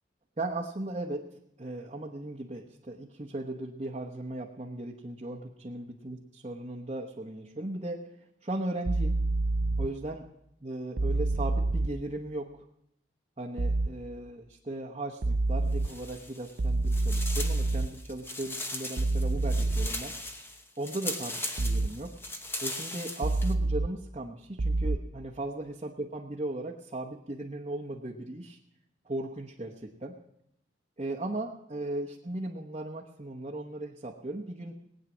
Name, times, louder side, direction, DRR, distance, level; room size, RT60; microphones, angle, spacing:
voice 1, 0.4-1.2 1.6-8.0 8.4-9.2 9.8-10.3 10.6-12.6 13.4-20.1 20.8-22.1 22.6-28.6 29.0-30.1 31.0-34.7, right 1 dB, 35° right, -1 dB, 1.1 m, -37 dB
sound 1, 8.8-9.9 11.0-11.9 13.6-13.9 15.2-15.9 16.6-17.9 19.0-19.9 21.6-21.9 23.2-23.9 24.6-25.0, right 2 dB, 55° right, 0.6 m, -27 dB
sound 2, 15.7-16.6 16.9-23.5, left 2 dB, 10° left, 1.0 m, -39 dB
19.5 x 9.2 x 6.2 m, 0.77 s
head